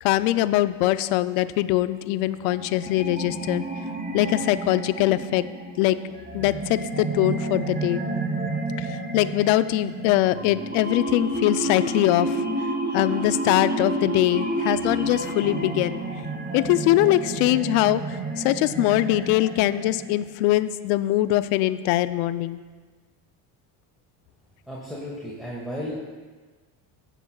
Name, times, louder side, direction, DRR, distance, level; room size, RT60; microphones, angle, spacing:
voice 1, 0.0-3.6 4.1-5.4 5.8-6.0 6.3-8.1 8.8-12.4 12.9-16.0 16.5-22.6, left 15 dB, 75° left, 13 dB, 0.6 m, -22 dB
sound 1, 2.5-20.4, right 2 dB, 20° right, 0.8 m, -30 dB
voice 2, 24.7-26.0, equal, ahead, -6 dB, 1.9 m, -34 dB
16.0 x 8.2 x 2.3 m, 1.4 s
supercardioid pair, 85°, 48 cm